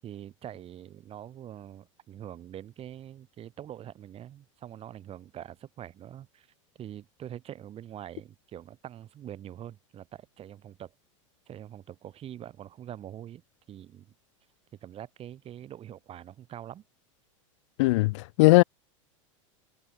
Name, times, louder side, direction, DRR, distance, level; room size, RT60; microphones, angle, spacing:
voice 1, 0.0-6.5 6.8-10.9 11.5-13.4 13.7-14.1 14.8-16.8, right 11 dB, 35° right, 7.1 m, -44 dB
voice 2, 17.8-18.6, left 23 dB, 65° left, 0.5 m, -19 dB
hypercardioid pair, 105°, 17 cm